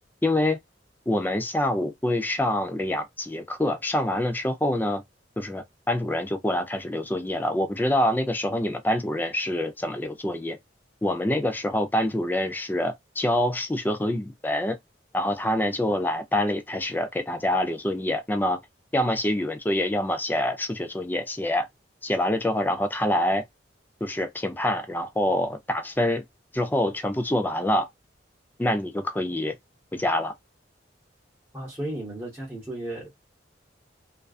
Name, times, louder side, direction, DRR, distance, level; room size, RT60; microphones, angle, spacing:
voice 1, 0.2-0.6 1.1-5.0 5.4-10.6 11.0-14.8 15.1-18.6 18.9-21.7 22.0-23.4 24.0-26.2 26.5-27.9 28.6-29.6 29.9-30.3, left 1 dB, 10° left, 0.4 m, -26 dB
voice 2, 31.5-33.1, right 1 dB, 15° right, 0.9 m, -34 dB
2.5 x 2.2 x 2.3 m
head